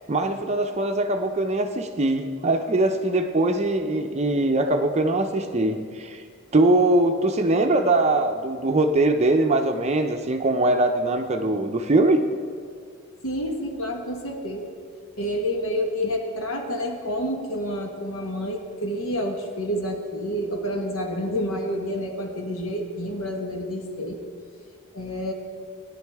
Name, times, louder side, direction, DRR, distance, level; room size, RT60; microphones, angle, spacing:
voice 1, 0.1-6.2 6.5-12.2, right 2 dB, 30° right, 5 dB, 0.5 m, -22 dB
voice 2, 13.2-14.7 15.2-24.2 24.9-25.3, equal, 85° left, 3 dB, 1.3 m, -29 dB
17.5 x 10.5 x 3.5 m, 2.1 s
head